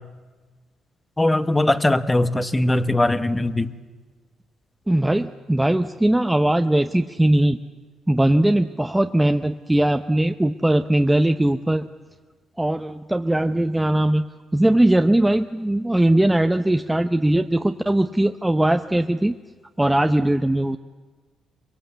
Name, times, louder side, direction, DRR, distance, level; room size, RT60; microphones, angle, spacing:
voice 1, 1.2-3.7, left 1 dB, 15° left, 12 dB, 1.0 m, -20 dB
voice 2, 4.9-7.6 8.1-11.9 12.6-14.3 14.5-19.4 19.8-20.8, right 1 dB, 10° right, 7 dB, 0.7 m, -20 dB
22.5 x 22.0 x 8.0 m, 1.4 s
cardioid pair, 90°, 0 cm